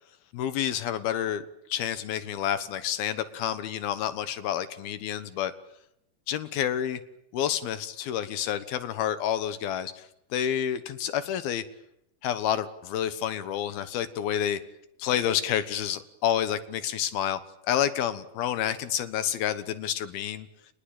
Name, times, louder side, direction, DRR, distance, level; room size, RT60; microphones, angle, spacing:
voice 1, 0.3-1.4 1.7-5.5 6.3-7.0 7.3-11.6 12.2-14.6 15.0-17.4 17.7-20.5, left 10 dB, 80° left, 12 dB, 3.2 m, -29 dB
28.0 x 21.0 x 8.9 m, 0.81 s
omnidirectional pair, 4.3 m